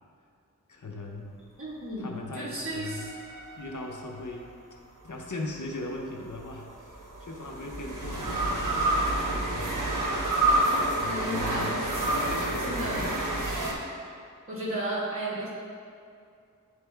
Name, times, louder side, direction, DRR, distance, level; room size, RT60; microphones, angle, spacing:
voice 1, 0.7-1.3 2.0-3.1 3.6-4.5 5.0-8.6 9.1-9.8 10.8-11.7 12.0-13.0, left 2 dB, 70° left, 0 dB, 0.8 m, -39 dB
voice 2, 1.6-3.1 11.0-13.1 14.5-15.5, right 1 dB, 45° right, -8 dB, 1.5 m, -34 dB
sound 1, 2.8-4.3 6.2-13.7, right 1 dB, 80° right, 0.9 m, -29 dB
9.7 x 3.4 x 3.4 m, 2.3 s
wide cardioid pair, 45°, 31 cm